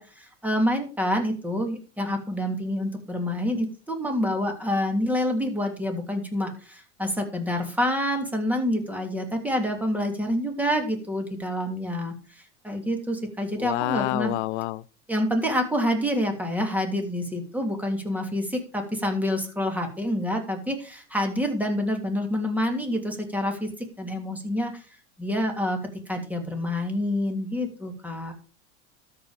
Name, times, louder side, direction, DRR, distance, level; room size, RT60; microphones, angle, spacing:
voice 1, 0.0-12.1 12.6-14.3 15.1-24.8 25.2-25.8 26.1-28.3, left 1 dB, 5° right, 3.0 m, -27 dB
voice 2, 13.6-14.8, left 19 dB, 75° left, 0.5 m, -27 dB
13.0 x 5.6 x 5.1 m
supercardioid pair, 105°, 35 cm